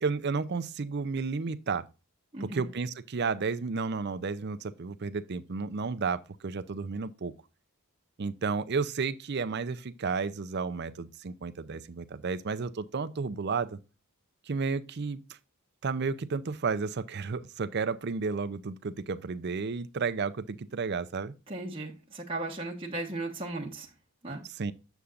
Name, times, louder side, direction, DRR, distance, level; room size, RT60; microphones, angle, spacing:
voice 1, 0.0-1.9 2.4-7.3 8.2-13.8 14.5-15.4 15.8-21.3 24.4-24.7, right 4 dB, 50° right, 0.5 m, -32 dB
voice 2, 2.3-2.7 21.5-23.9 24.2-24.4, right 2 dB, 25° right, 1.1 m, -36 dB
8.1 x 6.9 x 2.4 m
head